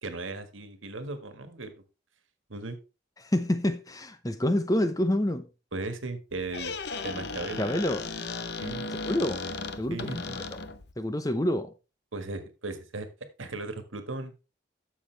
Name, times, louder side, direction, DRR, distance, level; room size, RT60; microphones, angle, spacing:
voice 1, 0.0-1.7 2.5-2.8 5.7-6.7 7.0-7.7 8.6-8.9 9.9-10.4 12.1-13.1 13.4-14.3, right 2 dB, 90° right, 1.7 m, -37 dB
voice 2, 3.2-5.5 7.6-8.1 9.0-9.4 9.8-10.6 11.0-11.7, left 1 dB, 20° left, 0.7 m, -28 dB
Squeak, 6.3-10.9, left 3 dB, 55° left, 0.8 m, -36 dB
11.5 x 7.1 x 3.4 m
head